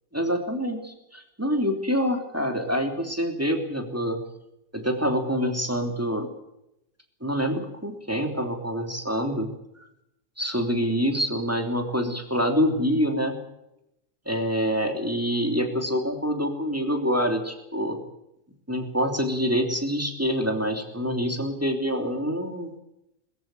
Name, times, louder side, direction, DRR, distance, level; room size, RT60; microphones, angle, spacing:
voice 1, 0.1-4.2 4.7-6.3 7.2-9.5 10.4-13.4 14.2-18.0 18.7-22.7, equal, 10° right, 4 dB, 3.0 m, -26 dB
23.0 x 14.5 x 9.1 m, 0.84 s
omnidirectional pair, 1.3 m